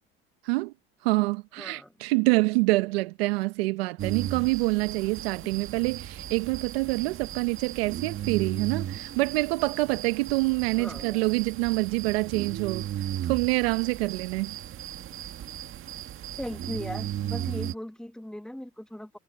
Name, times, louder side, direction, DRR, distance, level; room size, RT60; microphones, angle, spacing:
voice 1, 1.0-12.8 13.2-14.6, right 24 dB, 85° right, 0.9 m, -26 dB
voice 2, 1.6-1.9 5.4-5.5 10.8-11.3 16.4-19.2, left 1 dB, ahead, 1.7 m, -38 dB
sound 1, 4.0-17.7, right 11 dB, 45° right, 1.7 m, -36 dB
supercardioid pair, 100°, 29 cm